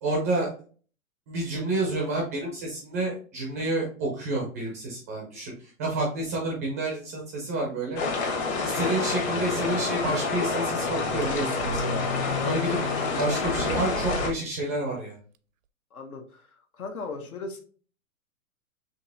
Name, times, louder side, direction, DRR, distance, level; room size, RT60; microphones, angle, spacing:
voice 1, 0.0-0.5 1.3-8.0 8.6-12.0 12.4-12.8 13.2-15.2, right 2 dB, 15° right, -1 dB, 0.3 m, -29 dB
sound 1, 8.0-14.3, left 4 dB, 50° left, 1.4 m, -28 dB
sound 2, 11.2-11.8 12.3-12.4 13.0-13.1 13.4-14.6, right 7 dB, 65° right, 0.5 m, -35 dB
voice 2, 15.9-16.5 16.7-17.6, left 3 dB, 85° left, 4 dB, 1.2 m, -37 dB
5.2 x 2.9 x 2.5 m, 0.42 s
hypercardioid pair, 135°, 43 cm